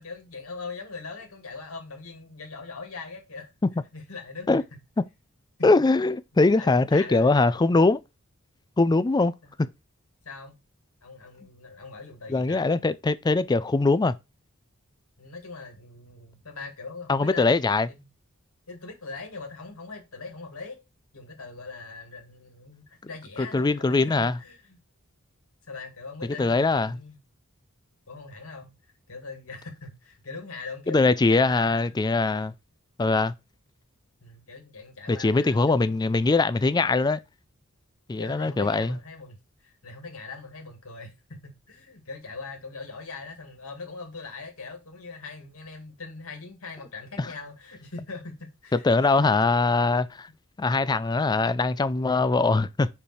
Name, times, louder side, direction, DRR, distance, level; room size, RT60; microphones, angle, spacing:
voice 1, 0.0-3.5 3.9-4.6 5.6-5.7 6.5-7.3 9.4-9.5 10.2-10.6 11.0-12.7 15.2-17.6 17.9-18.1 18.7-20.8 21.1-24.8 25.7-27.2 28.1-28.8 29.1-31.0 31.3-32.0 34.2-36.4 38.2-49.3, left 4 dB, 85° left, 2.2 m, -41 dB
voice 2, 5.6-8.0 8.8-9.3 9.6-9.7 12.3-14.2 17.1-17.9 23.4-24.4 26.4-27.0 30.9-32.5 33.0-33.3 35.1-37.2 38.1-39.0 47.2-47.3 48.7-50.3 50.6-52.9, left 3 dB, 20° left, 0.4 m, -22 dB
5.4 x 4.8 x 4.2 m
head